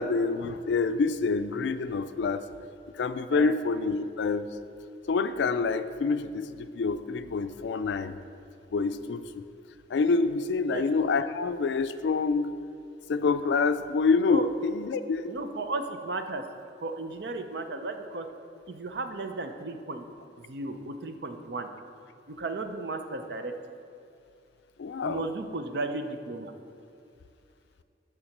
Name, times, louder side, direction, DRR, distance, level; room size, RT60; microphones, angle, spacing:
voice 1, 0.0-2.4 2.9-4.5 5.1-8.2 8.7-9.4 9.9-12.5 13.1-15.4 24.8-25.3, left 4 dB, 75° left, 11 dB, 0.4 m, -27 dB
voice 2, 15.3-16.4 16.8-18.3 18.7-20.0 20.4-21.7 22.4-23.5 25.0-26.5, right 2 dB, 65° right, 7 dB, 0.6 m, -34 dB
7.1 x 5.0 x 6.5 m, 2.5 s
head